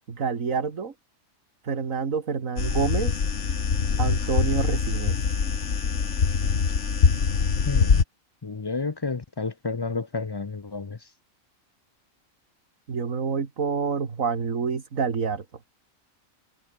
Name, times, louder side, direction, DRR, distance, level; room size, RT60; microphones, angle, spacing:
voice 1, 0.1-0.9 1.6-3.3 4.0-5.2 12.9-15.4, right 5 dB, 75° right, 2.3 m, -27 dB
sound 1, 2.6-8.0, left 6 dB, 60° left, 1.9 m, -23 dB
voice 2, 7.6-8.0 8.4-11.0, left 4 dB, 35° left, 0.4 m, -30 dB
omnidirectional pair, 1.4 m